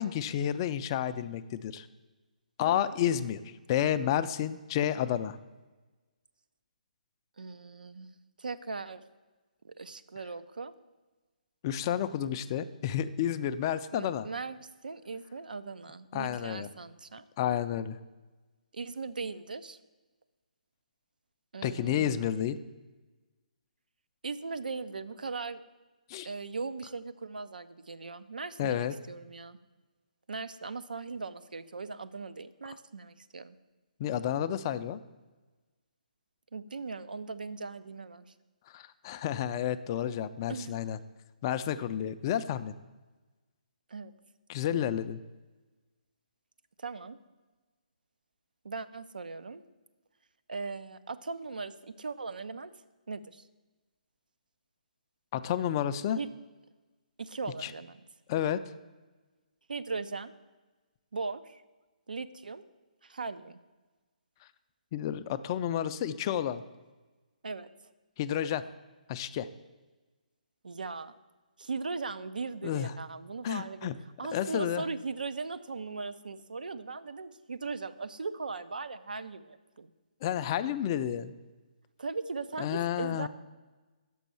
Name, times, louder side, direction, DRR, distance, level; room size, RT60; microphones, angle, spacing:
voice 1, 0.0-1.9 2.6-3.4 3.7-5.4 11.6-14.3 16.1-16.7 17.4-18.0 21.6-22.6 26.1-26.3 28.6-28.9 32.7-32.8 34.0-35.0 38.7-41.0 41.4-42.7 44.5-45.2 55.3-56.2 57.6-57.7 58.3-58.6 64.9-66.6 68.2-68.6 69.1-69.5 72.6-72.9 73.4-74.0 74.3-74.8 80.2-81.3 82.6-83.3, left 10 dB, 30° left, 13 dB, 0.3 m, -30 dB
voice 2, 2.6-3.0 7.4-9.0 9.6-10.7 13.9-17.3 18.7-19.8 21.5-22.3 24.2-25.6 26.2-29.6 30.3-33.6 36.5-38.3 40.5-40.8 43.9-44.1 46.8-47.2 48.6-49.6 50.5-52.7 53.1-53.5 56.2-56.3 57.2-58.0 59.7-60.3 61.1-61.6 62.1-62.6 63.0-63.6 67.4-67.7 70.6-71.1 71.6-73.9 74.2-79.9 82.0-83.3, right 4 dB, 80° right, 13 dB, 0.5 m, -39 dB
6.2 x 5.3 x 6.9 m, 1.2 s
hypercardioid pair, 145°, 5 cm